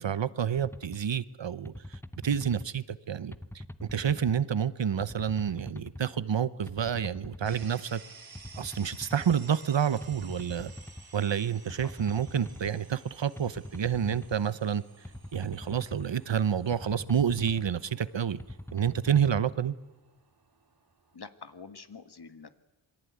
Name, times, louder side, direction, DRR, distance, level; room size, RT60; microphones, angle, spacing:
voice 1, 0.0-8.0 8.6-10.7 11.1-14.8 15.3-18.4 18.7-19.7, right 8 dB, 65° right, 16 dB, 0.9 m, -29 dB
sound 1, 0.6-1.0 1.7-2.7 3.3-4.4 5.0-6.0 6.7-7.7 8.4-9.4 10.0-11.1 11.7-12.7 13.4-14.4 15.0-16.1 16.7-17.8 18.4-19.4, left 1 dB, 5° left, 0.9 m, -43 dB
sound 2, 7.5-21.2, right 4 dB, 50° right, 2.3 m, -54 dB
voice 2, 21.1-22.5, left 5 dB, 55° left, 10 dB, 1.7 m, -46 dB
27.5 x 22.5 x 9.5 m, 1.1 s
wide cardioid pair, 95°, 47 cm